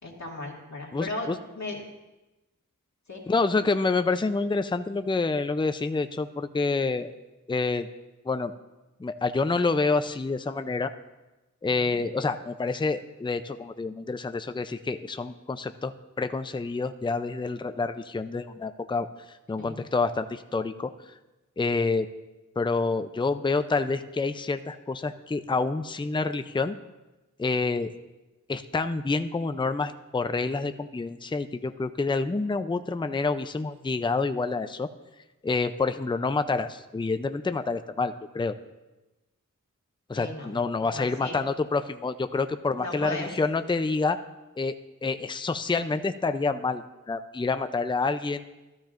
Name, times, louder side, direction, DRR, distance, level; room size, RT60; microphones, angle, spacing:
voice 1, 0.0-1.8 3.1-3.2 11.7-12.1 19.6-19.8 40.1-40.6 40.9-41.4 42.8-43.3, left 2 dB, 60° left, -2 dB, 2.2 m, -36 dB
voice 2, 0.9-1.4 3.3-7.2 7.5-7.9 8.2-8.5 9.0-10.9 11.6-15.9 16.2-20.9 21.6-22.1 22.6-26.8 27.4-27.9 28.5-34.9 35.4-38.5 40.1-44.2 44.6-44.7 45.0-48.4, left 3 dB, 15° left, 10 dB, 0.5 m, -28 dB
13.5 x 12.0 x 2.5 m, 1.1 s
wide cardioid pair, 55°, 32 cm